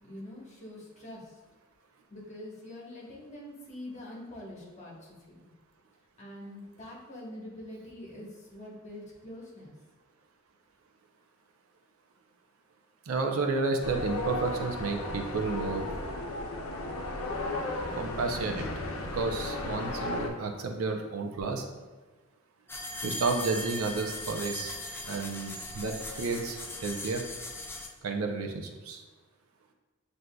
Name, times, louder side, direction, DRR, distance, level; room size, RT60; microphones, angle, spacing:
voice 1, 0.0-1.4 2.1-5.4 6.2-9.7, left 1 dB, 35° left, -4 dB, 1.1 m, -45 dB
voice 2, 13.1-15.9 18.0-18.7 19.1-21.7 23.0-24.8 25.0-27.2 28.0-29.0, right 3 dB, 75° right, 4 dB, 0.5 m, -31 dB
sound 1, 13.8-20.3, left 2 dB, 75° left, 0.6 m, -35 dB
sound 2, 22.7-27.9, left 1 dB, 10° left, 0.4 m, -39 dB
7.6 x 2.6 x 2.2 m, 1.3 s
head